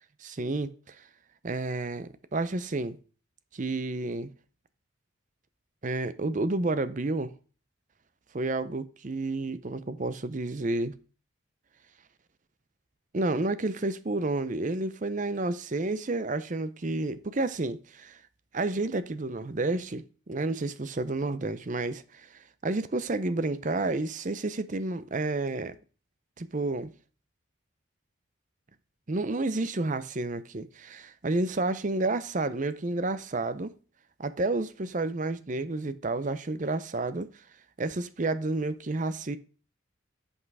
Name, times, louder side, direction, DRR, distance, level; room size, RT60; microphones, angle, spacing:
voice 1, 0.2-1.0 1.4-3.0 3.5-4.3 5.8-7.3 8.3-10.9 13.1-18.2 18.5-25.8 26.4-26.9 29.1-33.7 34.2-37.3 37.8-39.4, right 2 dB, 40° right, 0.6 m, -30 dB
8.3 x 5.5 x 4.8 m
head